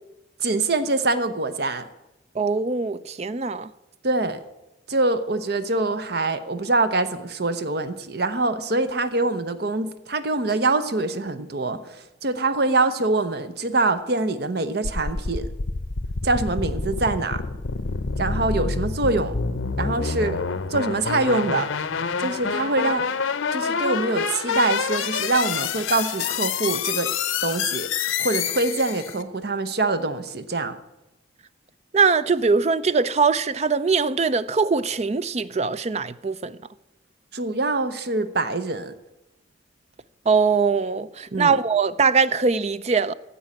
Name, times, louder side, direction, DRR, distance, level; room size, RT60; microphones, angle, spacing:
voice 1, 0.4-1.8 4.0-4.4 4.9-15.5 16.2-17.4 18.2-19.3 19.8-20.4 20.7-21.7 22.2-23.0 23.5-27.1 27.4-27.9 28.2-30.8 37.3-38.9 41.3-41.6, right 2 dB, 55° right, 0.8 m, -24 dB
voice 2, 2.4-3.7 31.9-36.6 40.3-43.1, right 5 dB, 35° right, 0.4 m, -22 dB
sound 1, 14.8-29.2, left 5 dB, 85° left, 0.8 m, -27 dB
15.5 x 5.5 x 8.7 m
head